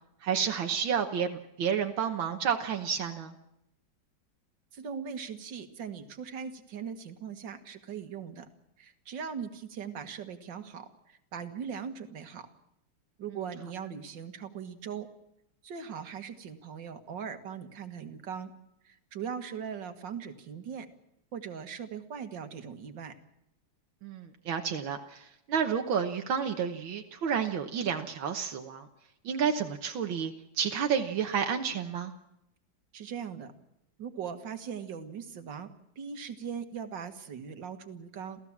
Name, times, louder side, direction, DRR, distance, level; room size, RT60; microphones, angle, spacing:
voice 1, 0.2-3.3 24.0-28.9 29.3-32.1, right 7 dB, 85° right, 4 dB, 2.0 m, -30 dB
voice 2, 4.7-8.5 8.8-12.5 13.2-15.1 15.6-18.5 18.8-20.9 21.3-23.1 32.9-33.5 34.0-35.7 36.0-38.4, right 7 dB, 70° right, 8 dB, 2.3 m, -40 dB
28.0 x 16.0 x 7.3 m, 0.83 s
omnidirectional pair, 2.1 m